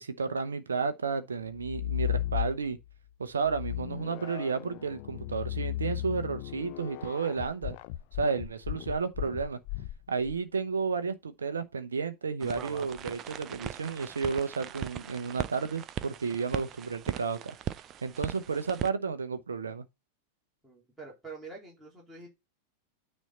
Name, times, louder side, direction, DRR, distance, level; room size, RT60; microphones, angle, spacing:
voice 1, 0.0-2.8 3.2-7.8 8.2-9.6 10.1-17.4 18.0-19.9, right 5 dB, 70° right, 0.8 m, -32 dB
sound 1, 1.5-2.9 3.4-10.4, left 14 dB, 45° left, 0.5 m, -35 dB
sound 2, 12.4-18.9, right 11 dB, 30° right, 0.5 m, -39 dB
voice 2, 20.6-22.3, right 4 dB, 5° right, 3.8 m, -46 dB
9.2 x 4.4 x 4.2 m
figure-of-eight pair, 90°, 0 cm